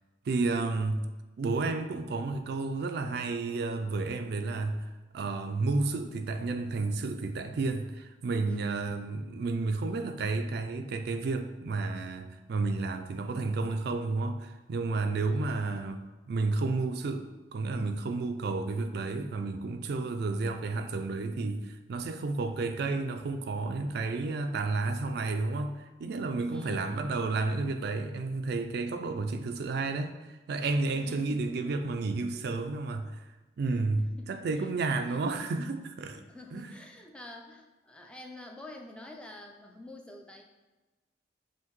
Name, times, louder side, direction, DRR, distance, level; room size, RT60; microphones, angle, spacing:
voice 1, 0.3-1.1 1.4-4.9 5.1-16.0 16.3-33.2 33.6-34.0 34.3-36.2 36.5-36.7, right 3 dB, 65° right, 6 dB, 0.4 m, -31 dB
voice 2, 8.5-8.8 15.3-16.0 26.4-27.1 30.9-31.5 34.0-35.2 36.1-40.4, left 2 dB, 5° left, 1 dB, 0.4 m, -47 dB
5.6 x 2.6 x 3.0 m, 1.1 s
head